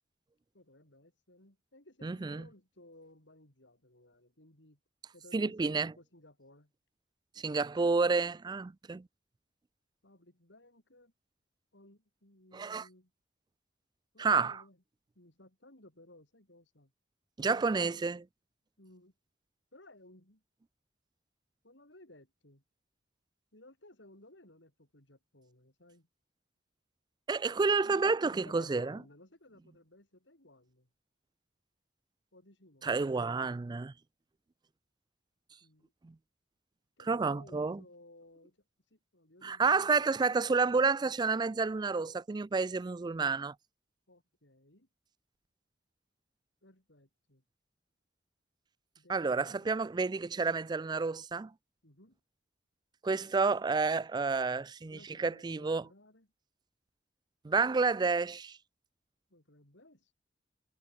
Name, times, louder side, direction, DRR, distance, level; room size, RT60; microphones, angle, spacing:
voice 1, 0.5-4.8 5.1-6.7 10.0-11.1 11.7-13.1 14.1-14.8 15.2-16.9 18.8-19.1 19.7-20.4 21.6-22.6 23.5-26.1 28.4-30.9 32.3-32.9 35.6-35.9 37.0-39.9 44.1-44.9 46.6-47.4 49.0-49.7 51.8-52.2 54.2-56.3 59.3-60.1, left 1 dB, 75° left, 5.8 m, -59 dB
voice 2, 2.0-2.5 5.3-5.9 7.4-9.1 12.5-12.9 14.2-14.6 17.4-18.3 27.3-29.0 32.8-33.9 36.0-36.1 37.0-37.8 39.4-43.5 49.1-51.5 53.0-55.8 57.4-58.6, right 4 dB, 25° right, 0.3 m, -30 dB
head